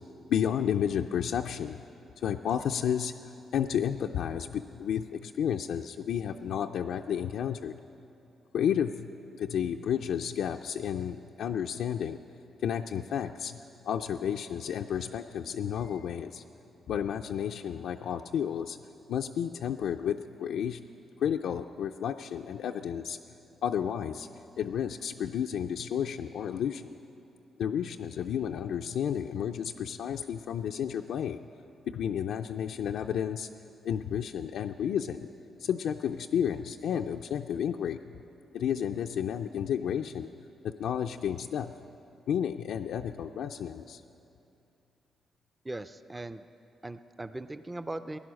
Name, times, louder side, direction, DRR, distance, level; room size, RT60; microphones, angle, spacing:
voice 1, 0.3-1.8 2.2-7.7 8.5-9.1 9.4-12.2 12.6-13.6 13.8-16.4 16.9-18.8 19.1-20.8 21.2-23.2 23.6-24.3 24.6-26.9 27.6-31.4 31.9-33.5 33.8-35.3 35.6-38.0 38.5-40.3 40.6-41.7 42.3-44.0, left 8 dB, 85° left, 4 dB, 0.3 m, -31 dB
voice 2, 45.6-46.5 46.8-48.2, right 2 dB, 15° right, 11 dB, 0.4 m, -39 dB
15.5 x 10.5 x 6.3 m, 2.7 s
cardioid pair, 90°, 0 cm